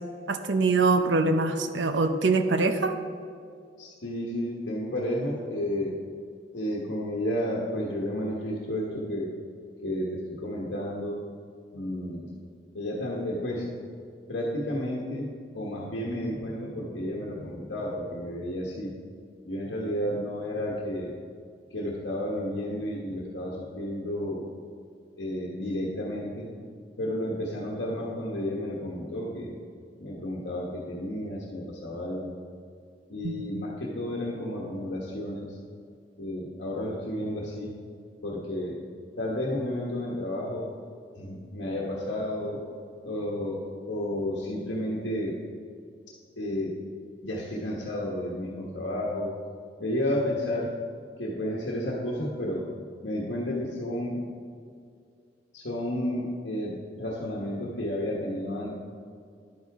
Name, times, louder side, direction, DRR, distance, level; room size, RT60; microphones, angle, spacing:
voice 1, 0.3-2.9 33.2-33.6, right 3 dB, 85° right, 8 dB, 0.7 m, -24 dB
voice 2, 3.8-5.9 6.5-9.3 9.8-11.2 11.7-12.3 12.7-13.9 14.3-18.9 19.4-21.1 21.7-24.5 25.2-26.5 27.0-29.6 30.0-32.3 33.1-35.6 36.2-37.7 38.2-38.8 39.2-40.7 41.2-42.6 43.0-45.4 46.4-46.8 47.2-49.3 49.8-50.7 51.2-52.6 53.0-54.3 55.5-58.8, left 1 dB, 80° left, -4 dB, 1.3 m, -32 dB
10.5 x 9.6 x 3.6 m, 2.3 s
head